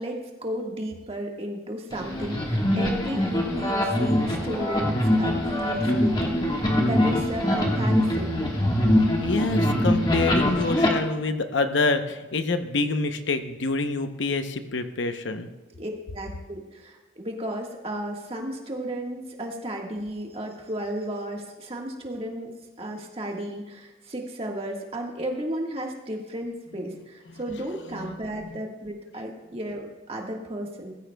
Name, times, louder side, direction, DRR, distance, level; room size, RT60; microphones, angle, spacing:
voice 1, 0.0-6.5 6.8-8.3 15.8-30.9, right 1 dB, 30° right, 0 dB, 1.6 m, -34 dB
sound 1, 1.9-10.9, left 1 dB, 25° left, 1.6 m, -23 dB
voice 2, 9.2-15.5 28.0-28.1, left 3 dB, 80° left, 8 dB, 0.8 m, -26 dB
18.5 x 15.0 x 2.3 m, 1.1 s
head